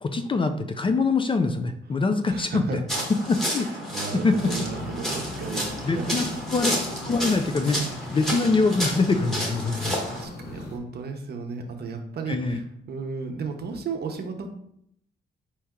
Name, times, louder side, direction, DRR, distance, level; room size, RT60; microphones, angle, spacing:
voice 1, 0.0-2.8 3.3-3.7 4.2-4.7 5.8-7.8 8.1-9.9 12.3-12.6, left 3 dB, 25° left, 8 dB, 0.4 m, -24 dB
voice 2, 2.2-2.8 3.5-6.4 9.6-12.6 12.9-14.5, right 4 dB, 55° right, 4 dB, 0.8 m, -34 dB
sound 1, 2.9-10.2, equal, ahead, 1.2 m, -31 dB
sound 2, 4.3-10.8, left 1 dB, 55° left, 1.0 m, -39 dB
4.3 x 2.9 x 3.6 m, 0.72 s
cardioid pair, 90°, 20 cm